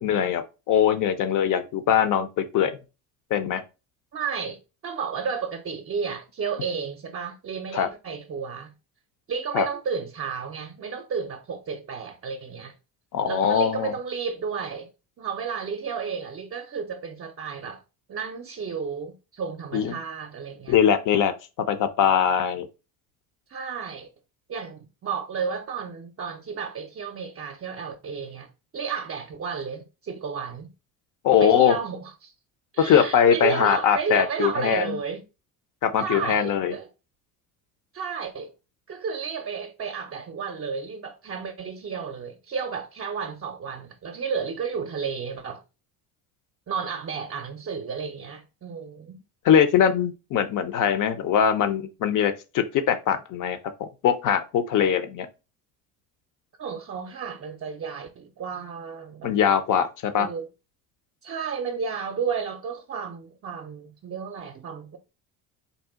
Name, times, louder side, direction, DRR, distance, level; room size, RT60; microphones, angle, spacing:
voice 1, 0.0-2.8 3.3-3.6 7.7-7.9 9.5-9.7 13.1-13.9 19.7-19.9 20.7-21.3 21.6-22.7 31.2-31.8 32.8-35.0 35.8-36.7 49.4-55.3 59.2-60.3, left 8 dB, 45° left, 0.8 m, -22 dB
voice 2, 4.1-4.6 4.8-8.7 9.3-12.7 13.2-14.9 15.2-17.8 18.1-20.8 23.5-24.1 24.5-30.7 31.4-32.3 32.7-35.2 36.0-36.9 37.9-38.5 38.9-45.6 46.7-49.2 56.6-59.3 60.1-60.5 61.2-65.0, right 6 dB, 35° right, 0.7 m, -32 dB
4.1 x 2.4 x 3.6 m
supercardioid pair, 80°, 42 cm